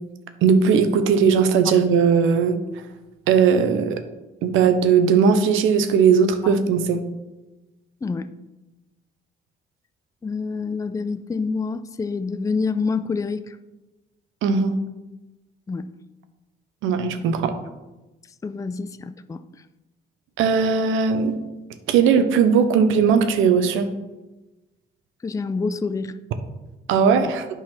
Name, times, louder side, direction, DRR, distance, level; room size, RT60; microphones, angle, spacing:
voice 1, 0.4-2.6 3.3-4.0 4.4-7.0 14.4-14.7 16.8-17.5 20.4-21.3 21.9-23.9 26.9-27.4, right 6 dB, 90° right, 9 dB, 0.8 m, -18 dB
voice 2, 10.2-13.6 15.7-15.9 18.4-19.4 25.2-26.1, left 4 dB, 15° left, 12 dB, 0.4 m, -27 dB
8.8 x 4.0 x 5.9 m, 1.1 s
cardioid pair, 90°, 20 cm